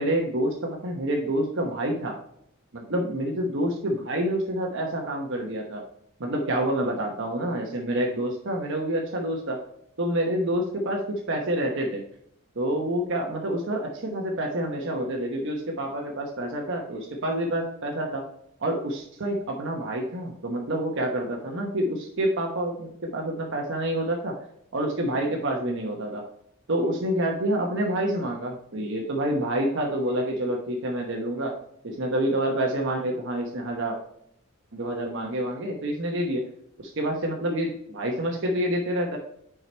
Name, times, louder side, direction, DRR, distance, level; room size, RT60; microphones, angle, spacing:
voice 1, 0.0-2.2 2.7-5.9 6.2-9.6 10.0-12.0 12.6-18.2 18.6-24.4 24.7-26.2 26.7-31.6 31.8-34.0 34.7-36.5 36.8-39.2, right 1 dB, 65° right, 1 dB, 1.1 m, -28 dB
6.3 x 4.8 x 4.3 m, 0.73 s
head